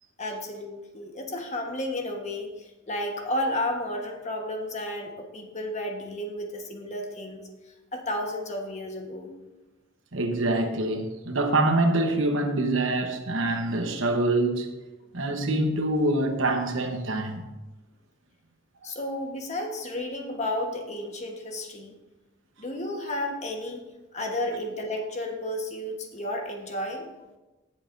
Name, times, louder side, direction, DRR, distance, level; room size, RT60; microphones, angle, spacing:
voice 1, 0.2-7.5 7.9-9.3 18.8-21.9 22.6-23.8 24.1-27.1, left 1 dB, 35° left, 1.3 m, -32 dB
voice 2, 10.1-14.7 15.1-17.5, right 2 dB, 75° right, 1.1 m, -25 dB
16.5 x 7.4 x 2.6 m
head